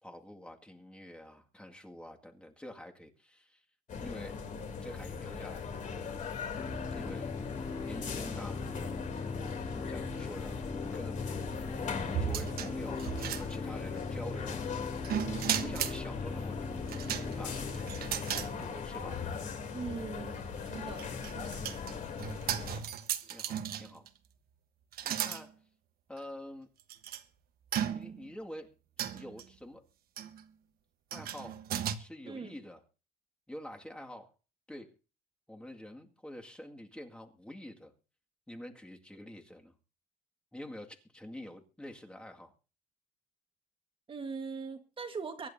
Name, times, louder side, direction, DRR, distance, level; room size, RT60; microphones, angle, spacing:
voice 1, 0.0-3.6 4.0-4.4 4.8-6.2 6.9-7.3 7.8-8.6 9.8-10.6 10.9-11.2 12.2-13.1 13.3-14.6 15.4-16.6 17.1-17.7 18.3-19.3 22.1-22.5 23.3-24.1 25.0-25.6 26.1-26.7 27.9-28.7 29.0-29.8 31.1-31.6 31.9-32.8 33.5-34.3 34.7-34.9 35.5-37.9 38.5-39.8 40.5-42.5, left 1 dB, 5° left, 2.0 m, -47 dB
sound 1, 3.9-22.8, left 5 dB, 50° left, 3.1 m, -39 dB
sound 2, 6.6-18.5, left 3 dB, 30° left, 4.7 m, -40 dB
sound 3, 12.1-13.9 15.0-16.0 16.9-18.5 18.9-19.0 20.6-24.1 24.9-25.4 26.2-26.3 26.9-27.2 27.7-28.3 29.0-29.4 30.2-30.4 31.1-32.0, right 10 dB, 65° right, 1.2 m, -36 dB
voice 2, 19.7-20.4 20.7-21.1 32.3-32.5 44.1-45.5, right 5 dB, 30° right, 1.5 m, -40 dB
24.0 x 11.0 x 2.7 m
cardioid pair, 110°, 17 cm